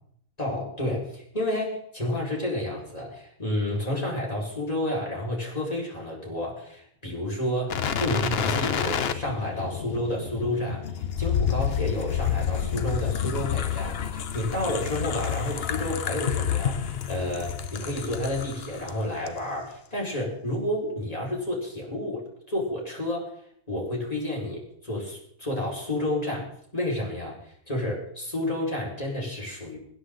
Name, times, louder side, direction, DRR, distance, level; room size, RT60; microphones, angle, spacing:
voice 1, 0.4-10.8 11.2-23.3 23.7-29.8, left 1 dB, 25° left, -3 dB, 5.1 m, -30 dB
sound 1, 7.7-18.9 19.3-19.4, left 8 dB, 50° left, 0.9 m, -29 dB
25.5 x 9.7 x 3.9 m, 0.67 s
omnidirectional pair, 1.6 m